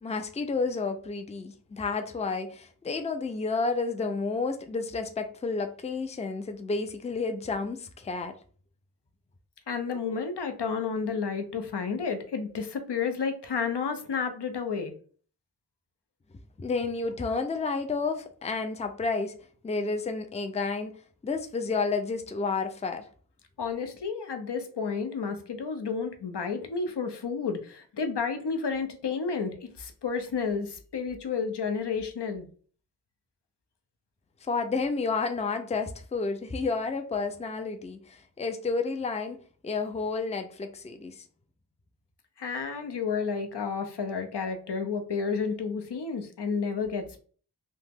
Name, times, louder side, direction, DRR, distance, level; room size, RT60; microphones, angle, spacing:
voice 1, 0.0-8.3 16.6-19.3 19.6-20.9 21.2-23.1 34.5-39.4 39.6-41.2, left 4 dB, 20° left, 0.4 m, -31 dB
voice 2, 9.7-14.9 23.6-32.5 42.4-47.2, left 5 dB, 90° left, 0.6 m, -31 dB
2.9 x 2.1 x 3.4 m
wide cardioid pair, 55°, 40 cm